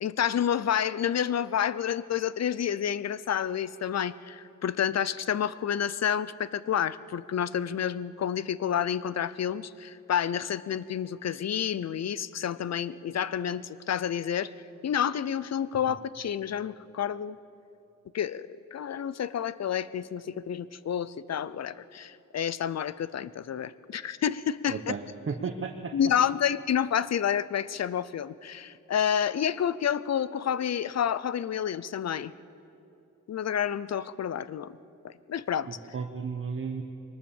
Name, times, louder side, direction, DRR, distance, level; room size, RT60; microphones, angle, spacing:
voice 1, 0.0-14.5 14.8-17.4 18.1-25.0 25.9-32.3 33.3-34.8 35.0-35.7, left 9 dB, 55° left, 18 dB, 0.6 m, -29 dB
voice 2, 24.7-25.9 35.7-36.8, right 5 dB, 40° right, 5 dB, 1.0 m, -34 dB
22.5 x 19.5 x 7.2 m, 2.8 s
wide cardioid pair, 140°, 33 cm